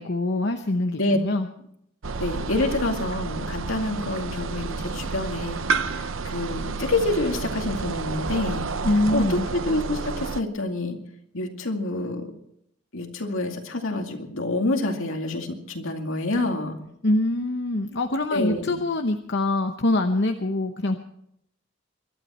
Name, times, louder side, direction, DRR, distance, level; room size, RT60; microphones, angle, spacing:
voice 1, 0.0-1.5 8.8-9.5 17.0-21.0, left 2 dB, 55° left, 5 dB, 0.9 m, -24 dB
sound 1, 2.0-10.4, right 4 dB, 70° right, 0.7 m, -30 dB
voice 2, 2.2-8.7 9.1-11.0 11.3-12.3 12.9-16.8 18.3-18.8, left 2 dB, 75° left, 4 dB, 2.3 m, -27 dB
23.5 x 12.5 x 4.3 m, 0.75 s
head